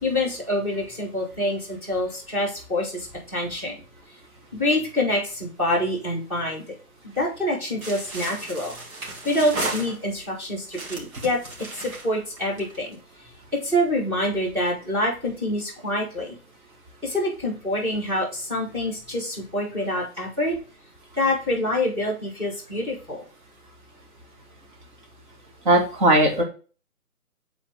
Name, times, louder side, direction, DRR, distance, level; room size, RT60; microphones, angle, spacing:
voice 1, 0.0-3.8 4.5-6.6 7.0-8.8 9.0-11.4 11.7-13.0 13.5-16.4 17.0-20.6 21.2-23.2, left 1 dB, 5° right, -5 dB, 1.7 m, -26 dB
sound 1, 7.8-10.3 10.7-12.9, right 2 dB, 65° right, 2.1 m, -34 dB
voice 2, 25.7-26.4, right 1 dB, 35° right, 0 dB, 1.8 m, -18 dB
7.4 x 4.0 x 3.6 m, 0.36 s
figure-of-eight pair, 150°, 44 cm